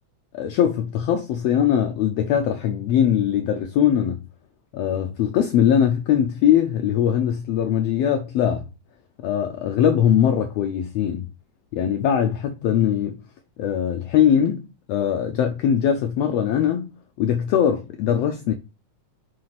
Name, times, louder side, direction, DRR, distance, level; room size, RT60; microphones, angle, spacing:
voice 1, 0.3-4.3 4.7-8.6 9.2-11.3 11.7-13.2 13.6-18.6, left 9 dB, 75° left, 1.6 m, -21 dB
7.5 x 2.5 x 5.8 m
omnidirectional pair, 3.4 m